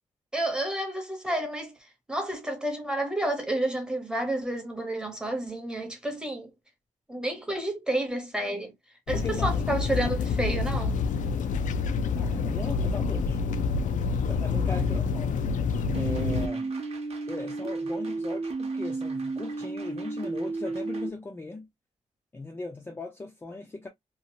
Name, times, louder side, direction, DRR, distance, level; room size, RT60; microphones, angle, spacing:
voice 1, 0.3-1.8 2.1-6.5 7.1-8.7 9.1-10.9, right 1 dB, 5° right, 0.8 m, -30 dB
sound 1, 9.1-16.5, left 5 dB, 80° left, 0.4 m, -27 dB
voice 2, 9.1-9.6 12.2-13.4 14.3-15.5 15.9-16.7 17.3-21.7 22.3-23.9, left 3 dB, 15° left, 0.4 m, -38 dB
sound 2, 15.9-21.1, right 3 dB, 50° right, 0.8 m, -33 dB
2.8 x 2.4 x 2.7 m
wide cardioid pair, 170°, 13 cm